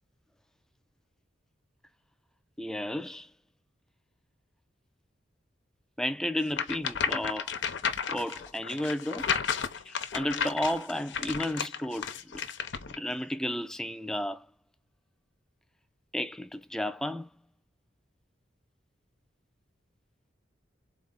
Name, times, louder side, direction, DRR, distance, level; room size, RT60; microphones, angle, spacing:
voice 1, 2.6-3.3 6.0-7.5 8.1-9.3 9.9-12.4 13.0-14.5 16.1-17.3, left 1 dB, 5° left, 0.3 m, -33 dB
sound 1, 6.5-13.0, left 7 dB, 80° left, 0.7 m, -33 dB
4.0 x 2.1 x 3.8 m
head